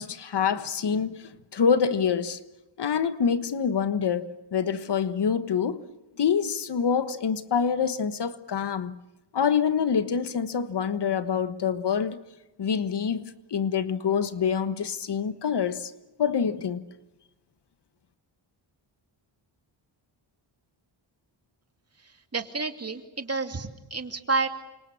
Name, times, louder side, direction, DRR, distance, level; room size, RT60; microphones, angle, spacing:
voice 1, 0.0-2.4 2.8-5.8 6.2-8.9 9.3-12.2 12.6-15.9 16.2-16.8, left 7 dB, 55° left, 1.4 m, -26 dB
voice 2, 22.0-24.5, right 3 dB, 30° right, 2.5 m, -30 dB
29.0 x 26.0 x 7.1 m
wide cardioid pair, 110°, 48 cm